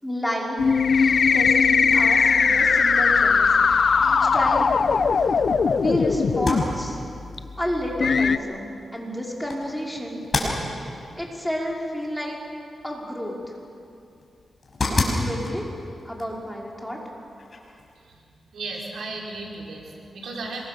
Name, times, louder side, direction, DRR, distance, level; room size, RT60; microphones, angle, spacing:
voice 1, 0.0-4.8 5.7-7.0 7.6-10.6 11.2-12.4 12.8-13.5 15.1-15.7 16.0-17.0, equal, 5° left, -2 dB, 5.4 m, -30 dB
sound 1, 0.6-6.6 7.4-7.5 8.0-8.4, left 5 dB, 60° left, 0.9 m, -19 dB
sound 2, 6.3-17.9, left 2 dB, 45° left, 5.8 m, -33 dB
voice 2, 18.0-20.7, right 3 dB, 85° right, -1 dB, 4.7 m, -36 dB
27.0 x 23.0 x 7.1 m, 2.5 s
cardioid pair, 75°, 0 cm